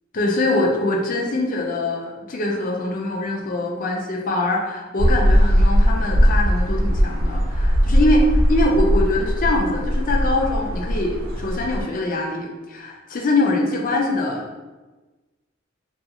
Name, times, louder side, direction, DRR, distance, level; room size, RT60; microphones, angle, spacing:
voice 1, 0.1-14.4, left 2 dB, 45° left, 0 dB, 0.4 m, -23 dB
sound 1, 5.0-11.8, equal, 85° right, 0.4 m, -19 dB
2.4 x 2.3 x 2.8 m, 1.2 s
head